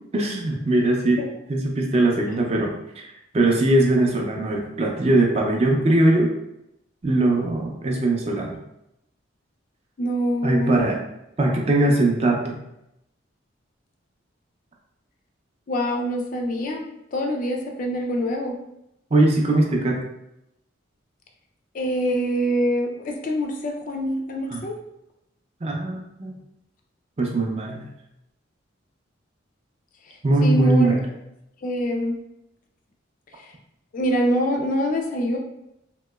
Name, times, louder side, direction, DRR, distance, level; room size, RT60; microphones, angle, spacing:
voice 1, 0.1-1.2 1.5-3.0 3.3-6.3 7.0-8.6 10.4-11.0 11.4-12.6 19.1-20.0 24.5-24.6 25.6-26.3 27.2-27.8 30.2-31.0, right 2 dB, 30° right, 0 dB, 0.4 m, -20 dB
voice 2, 10.0-10.9 15.7-16.8 17.1-18.6 21.7-24.7 30.4-31.0 31.6-32.2 33.4-33.5 33.9-35.4, equal, 40° left, 2 dB, 0.3 m, -25 dB
2.9 x 2.9 x 2.3 m, 0.84 s
head